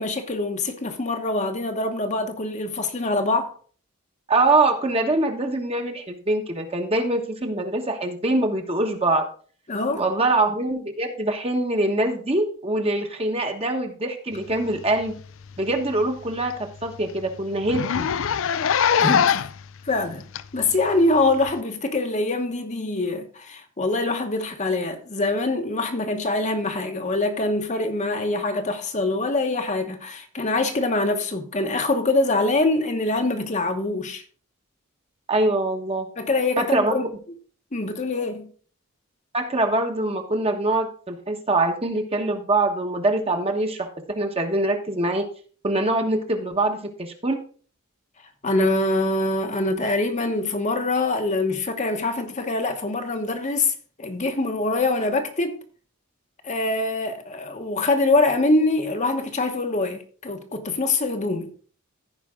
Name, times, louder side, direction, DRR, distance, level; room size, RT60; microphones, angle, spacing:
voice 1, 0.0-3.5 9.7-10.0 19.0-19.4 19.8-20.3 20.5-34.2 36.2-37.1 37.7-38.5 48.4-55.6 56.4-61.5, left 2 dB, 35° left, 1.0 m, -24 dB
voice 2, 4.3-9.3 10.0-15.1 15.6-16.5 16.8-18.1 35.3-36.1 36.6-37.0 39.3-45.2 45.6-47.4, right 2 dB, 25° right, 1.2 m, -23 dB
Zipper (clothing), 15.0-15.2 15.6-15.7 16.0-16.1 16.5-16.6 16.8-17.0 17.6-19.6 20.4-20.5 21.5-21.6, left 7 dB, 65° left, 0.4 m, -22 dB
15.0 x 5.1 x 3.6 m
head